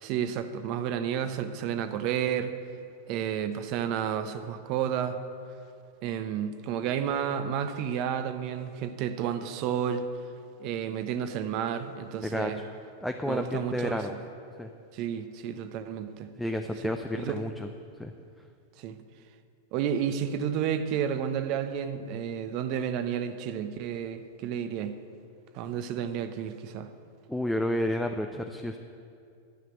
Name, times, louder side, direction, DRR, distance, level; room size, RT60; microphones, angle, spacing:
voice 1, 0.0-2.6 3.1-5.2 6.0-10.1 10.6-12.6 13.2-14.2 14.9-16.3 16.8-17.4 18.8-19.0 19.7-25.0 25.5-26.9, right 8 dB, 40° right, 10 dB, 0.8 m, -31 dB
voice 2, 12.2-12.6 13.0-14.1 14.6-14.7 16.4-17.7 18.0-18.1 27.3-28.8, left 1 dB, 5° left, 4 dB, 0.6 m, -31 dB
12.0 x 7.6 x 8.2 m, 2.4 s
figure-of-eight pair, 90°, 0 cm